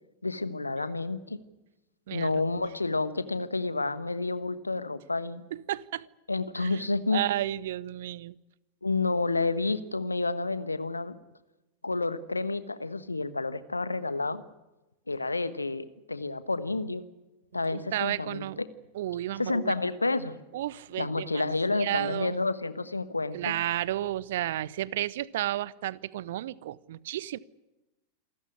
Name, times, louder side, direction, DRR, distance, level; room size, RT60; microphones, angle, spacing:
voice 1, 0.2-1.4 2.1-5.4 6.3-7.2 8.8-11.2 11.8-14.4 15.1-17.0 17.5-18.4 19.4-20.4 21.0-23.5, left 3 dB, 80° left, 1.2 m, -30 dB
voice 2, 2.1-2.4 5.5-6.1 6.6-6.8 7.1-8.4 17.5-18.6 18.9-19.8 20.5-21.5 21.7-22.4 23.3-27.4, right 13 dB, 55° right, 0.7 m, -32 dB
27.5 x 14.5 x 9.8 m
figure-of-eight pair, 90°, 0 cm